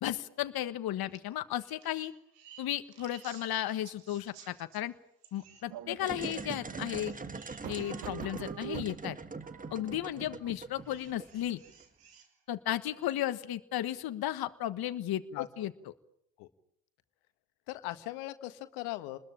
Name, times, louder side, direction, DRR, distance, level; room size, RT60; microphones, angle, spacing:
voice 1, 0.0-2.1 2.6-4.9 5.3-7.1 7.7-9.2 9.7-11.6 12.5-15.7, left 12 dB, 50° left, 10 dB, 1.5 m, -34 dB
sound 1, 1.1-1.2 1.5-4.8 5.2-5.6 6.9-8.0 8.7-8.8 10.8-12.3 13.0-13.1, right 8 dB, 80° right, 4.2 m, -56 dB
sound 2, 5.7-10.5, right 12 dB, 45° right, 1.2 m, -45 dB
sound 3, 6.0-11.8, right 3 dB, 15° right, 1.5 m, -42 dB
voice 2, 17.7-19.2, left 17 dB, 75° left, 11 dB, 1.7 m, -39 dB
28.0 x 21.0 x 8.9 m, 0.77 s
hypercardioid pair, 65°, 47 cm